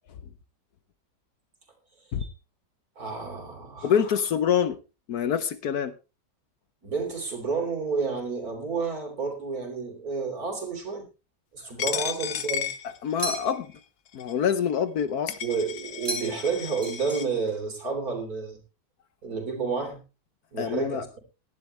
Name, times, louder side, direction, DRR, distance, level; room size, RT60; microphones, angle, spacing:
voice 1, 3.0-4.0 6.8-11.0 11.5-12.7 15.4-18.6 19.2-20.0 20.5-21.2, right 5 dB, 55° right, 3.9 m, -30 dB
voice 2, 3.8-4.8 5.1-5.9 11.9-12.0 13.0-13.7 14.1-15.3 20.6-21.0, left 8 dB, 65° left, 1.2 m, -26 dB
Coin (dropping), 11.8-13.6 14.2-14.3 15.0-15.1 15.3-17.3, left 9 dB, 80° left, 1.6 m, -34 dB
sound 1, 13.2-13.8 16.0-16.5 16.8-17.6, right 1 dB, 25° right, 3.8 m, -35 dB
17.5 x 11.5 x 3.2 m
omnidirectional pair, 1.9 m